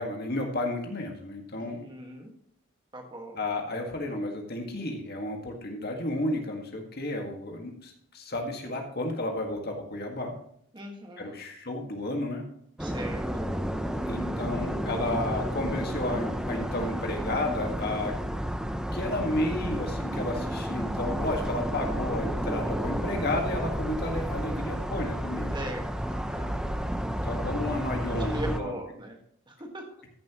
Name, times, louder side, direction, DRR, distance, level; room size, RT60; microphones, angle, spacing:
voice 1, 0.0-1.9 3.4-10.3 11.2-12.4 14.1-18.2 18.9-25.5 27.2-28.7, left 1 dB, 50° left, 2 dB, 1.7 m, -32 dB
voice 2, 1.6-2.3 2.9-3.4 10.7-11.4 12.8-13.5 25.5-26.5 28.2-29.2 29.5-29.8, right 1 dB, 25° right, 2 dB, 1.6 m, -40 dB
sound 1, 12.8-28.6, equal, 5° right, 0.6 m, -31 dB
14.0 x 7.5 x 3.0 m, 0.66 s
head